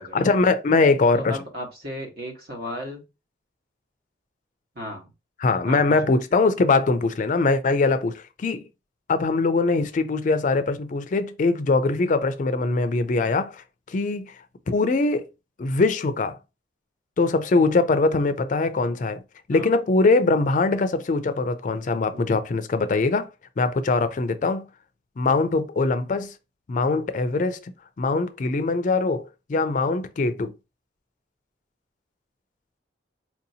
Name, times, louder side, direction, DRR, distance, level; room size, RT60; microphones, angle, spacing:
voice 1, 0.1-1.4 5.4-8.6 9.1-14.3 14.7-15.3 15.6-16.4 17.2-19.2 19.5-23.3 23.6-24.6 25.2-26.3 26.7-27.7 28.0-30.5, left 3 dB, 45° left, 0.4 m, -22 dB
voice 2, 1.2-3.0 4.7-5.1 5.6-6.0 19.5-19.7 22.1-22.3, equal, 60° right, 1.3 m, -35 dB
4.4 x 2.7 x 2.7 m
head